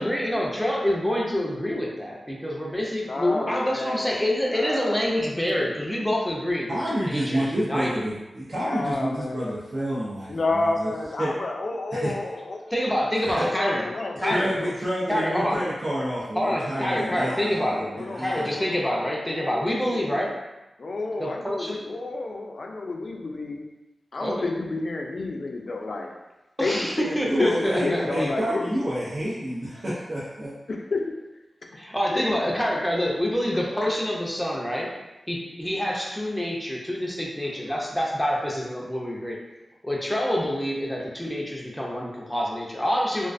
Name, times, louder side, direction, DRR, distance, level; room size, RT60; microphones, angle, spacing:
voice 1, 0.0-8.0 12.7-13.8 14.2-14.5 15.1-15.6 16.4-17.9 18.2-20.4 21.2-21.8 24.2-24.5 26.6-28.4 31.8-35.0 35.3-39.4 39.8-43.3, equal, 5° left, -3 dB, 0.5 m, -27 dB
voice 2, 3.0-5.7 8.6-9.5 10.3-12.6 13.5-14.7 15.1-15.6 16.4-20.3 20.8-23.6 24.1-26.1 26.6-28.8 30.7-31.0 31.6-31.7 32.1-32.2, left 2 dB, 60° left, 1 dB, 0.3 m, -31 dB
voice 3, 6.7-10.9 11.2-11.4 11.9-12.1 13.2-13.5 14.2-18.5 27.3-30.5, equal, 50° right, -10 dB, 0.6 m, -29 dB
2.3 x 2.2 x 2.5 m, 1.0 s
wide cardioid pair, 75°, 0 cm